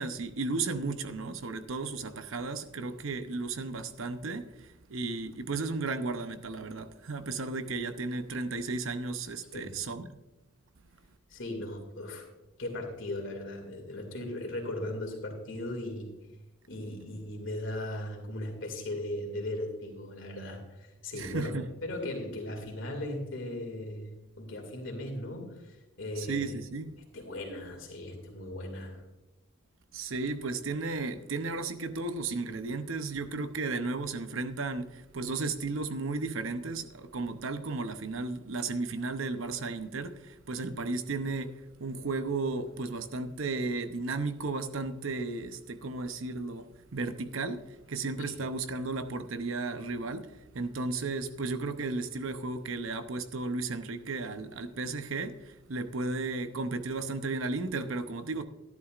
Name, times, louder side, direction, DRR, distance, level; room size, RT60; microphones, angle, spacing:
voice 1, 0.0-10.1 21.1-21.7 26.2-27.0 29.9-58.4, right 3 dB, 75° right, 0.8 m, -34 dB
voice 2, 11.3-12.3 12.6-16.1 16.7-26.6 27.1-29.0 48.3-48.4, left 1 dB, 65° left, 2.4 m, -38 dB
13.0 x 11.0 x 2.5 m
head